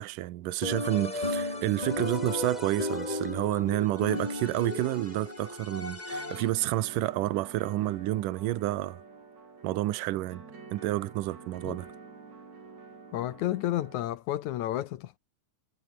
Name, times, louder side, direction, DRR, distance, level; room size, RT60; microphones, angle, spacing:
voice 1, 0.0-9.0 9.6-10.4 10.7-11.9, right 16 dB, 75° right, 2.5 m, -29 dB
sound 1, 0.6-6.7, left 2 dB, 15° left, 2.4 m, -34 dB
sound 2, 6.1-14.0, right 4 dB, 50° right, 6.4 m, -48 dB
voice 2, 13.1-15.2, left 13 dB, 70° left, 2.0 m, -31 dB
omnidirectional pair, 4.0 m